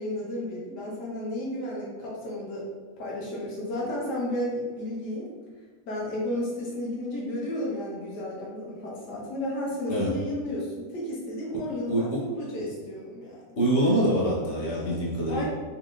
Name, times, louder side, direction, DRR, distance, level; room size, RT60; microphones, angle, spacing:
voice 1, 0.0-2.6 3.0-5.3 5.8-13.4 15.3-15.4, left 1 dB, 75° left, -5 dB, 1.5 m, -32 dB
voice 2, 11.9-12.2 13.6-15.4, right 1 dB, 45° left, -6 dB, 1.2 m, -25 dB
4.4 x 3.4 x 2.5 m, 1.5 s
omnidirectional pair, 1.8 m